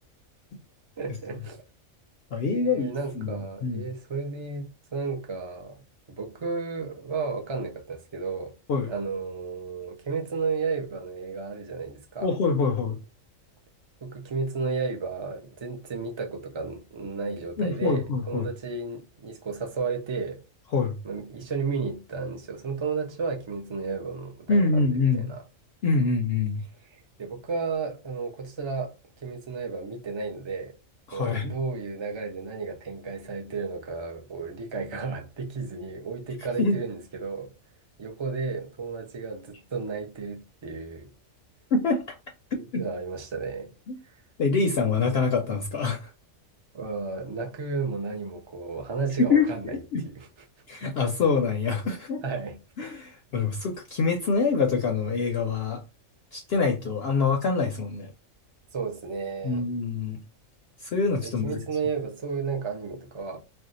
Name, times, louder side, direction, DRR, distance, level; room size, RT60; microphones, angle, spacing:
voice 1, 1.0-1.6 2.5-5.8 6.1-8.5 8.9-12.3 14.0-20.4 21.0-25.4 27.2-28.9 29.2-30.7 31.1-37.5 38.0-41.1 42.6-43.7 44.0-44.1 46.7-50.3 50.8-50.9 52.2-52.6 58.7-59.6 61.2-63.4, right 4 dB, 50° right, 0.3 m, -33 dB
voice 2, 2.3-2.9 3.1-3.8 8.7-8.9 12.2-13.0 17.6-18.5 20.7-21.0 24.5-25.3 25.8-26.6 31.1-31.5 36.6-36.8 41.7-42.2 42.5-42.8 43.9-44.0 44.4-46.1 49.3-50.0 50.7-52.2 52.8-55.8 56.3-58.1 59.4-60.2 60.8-61.6, left 4 dB, 65° left, 0.6 m, -25 dB
2.6 x 2.1 x 3.8 m
omnidirectional pair, 1.4 m